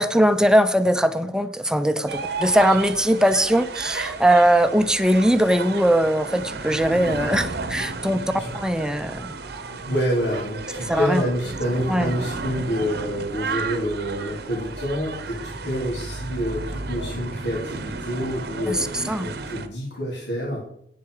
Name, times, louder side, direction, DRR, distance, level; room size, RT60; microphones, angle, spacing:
voice 1, 0.0-8.2 8.5-9.3 10.9-11.2 11.9-12.1 18.7-18.8 19.1-19.3, equal, 5° right, 10 dB, 0.7 m, -20 dB
sound 1, 2.1-19.7, right 3 dB, 65° right, 1.0 m, -33 dB
voice 2, 9.7-20.6, equal, 85° left, -4 dB, 3.3 m, -27 dB
10.5 x 8.9 x 4.9 m, 0.72 s
head